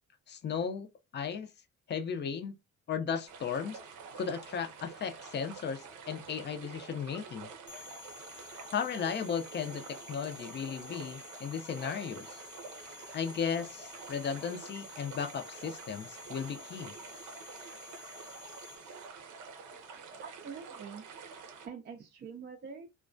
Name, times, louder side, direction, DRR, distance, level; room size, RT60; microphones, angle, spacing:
voice 1, 0.3-0.9 1.1-1.5 1.9-2.5 2.9-3.8 4.1-7.5 8.7-12.4 13.1-16.9, left 7 dB, 35° left, 0.5 m, -35 dB
sound 1, 3.3-21.7, right 5 dB, 85° right, 0.6 m, -48 dB
sound 2, 7.7-19.1, left 6 dB, 80° left, 0.8 m, -51 dB
voice 2, 20.2-21.0 21.6-22.9, right 6 dB, 35° right, 0.4 m, -45 dB
2.2 x 2.2 x 2.5 m
cardioid pair, 90°, 30 cm